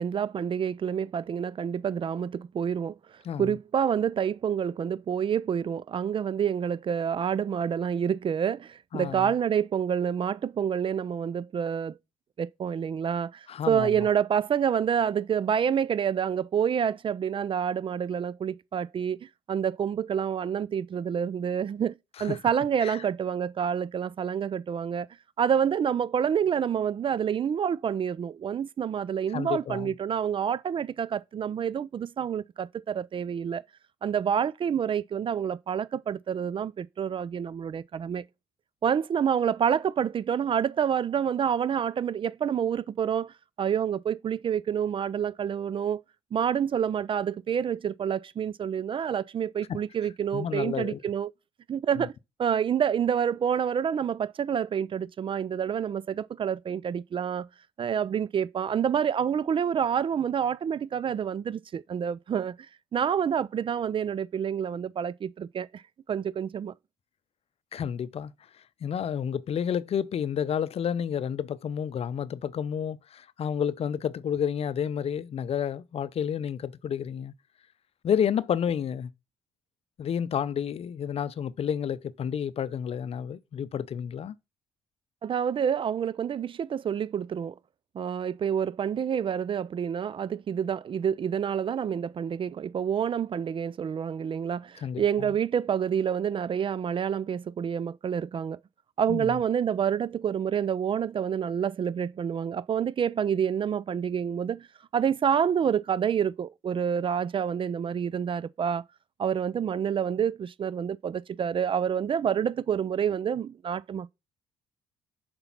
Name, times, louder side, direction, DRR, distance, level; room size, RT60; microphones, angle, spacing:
voice 1, 0.0-3.0 3.4-12.0 12.4-25.1 25.4-33.6 34.0-38.2 38.8-46.0 46.3-51.3 51.7-52.1 52.4-57.5 57.8-62.6 62.9-65.8 66.1-66.7 85.2-87.5 87.9-98.6 99.0-104.7 104.9-108.8 109.2-114.1, right 8 dB, 40° right, 0.4 m, -28 dB
voice 2, 8.9-9.3 13.5-13.9 22.2-22.4 22.8-23.0 29.3-29.9 49.7-49.8 50.3-51.0 52.0-52.1 67.7-68.3 68.8-77.3 78.0-79.1 80.0-84.3 94.8-95.3 99.1-99.3, left 8 dB, 45° left, 0.6 m, -30 dB
6.8 x 5.3 x 5.9 m
hypercardioid pair, 55°, 14 cm